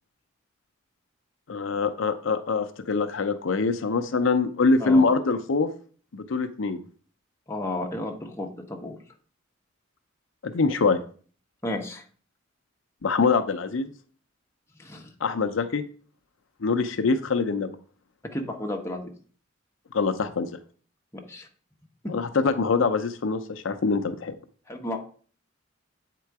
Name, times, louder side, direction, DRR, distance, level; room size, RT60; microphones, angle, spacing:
voice 1, 1.5-5.7 6.1-6.8 10.4-11.0 13.0-13.9 15.2-15.8 16.6-17.7 19.9-20.6 22.1-24.3, left 4 dB, 75° left, 8 dB, 0.6 m, -24 dB
voice 2, 7.5-9.0 11.6-12.0 14.8-15.1 18.3-19.1 21.3-21.5 24.7-25.0, left 1 dB, 15° left, 1 dB, 1.1 m, -32 dB
8.3 x 3.8 x 4.6 m, 0.43 s
head